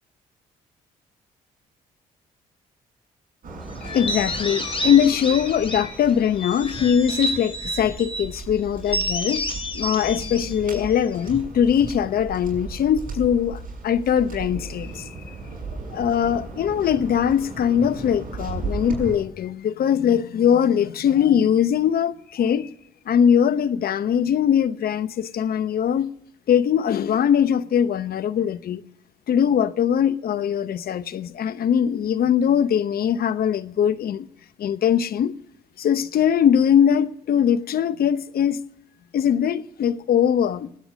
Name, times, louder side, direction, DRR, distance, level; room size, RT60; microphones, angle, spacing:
Waves surf, 3.4-19.2, right 3 dB, 50° right, 7.4 m, -36 dB
voice 1, 3.8-9.4 9.7-15.4 15.9-22.7 23.1-26.1 26.5-28.8 29.3-34.3 34.6-35.3 35.8-38.6 39.1-40.7, left 8 dB, 60° left, 0.9 m, -21 dB
sound 1, 3.9-6.0 6.4-8.3 8.9-11.4, equal, 30° left, 3.8 m, -30 dB
25.5 x 9.2 x 5.2 m
hypercardioid pair, 50°, 18 cm